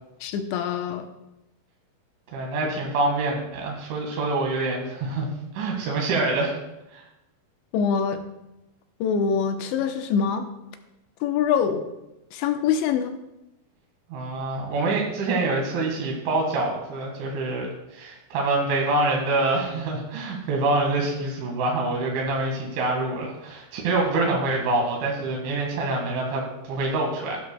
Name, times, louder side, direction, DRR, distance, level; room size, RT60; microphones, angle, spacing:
voice 1, 0.2-1.1 7.7-8.2 9.0-10.5 11.2-11.9 12.3-13.1, left 7 dB, 80° left, 6 dB, 3.0 m, -24 dB
voice 2, 2.3-5.3 5.5-6.5 6.9-7.0 14.1-27.4, right 2 dB, 90° right, -1 dB, 4.2 m, -26 dB
16.0 x 11.0 x 2.2 m, 0.92 s
omnidirectional pair, 5.3 m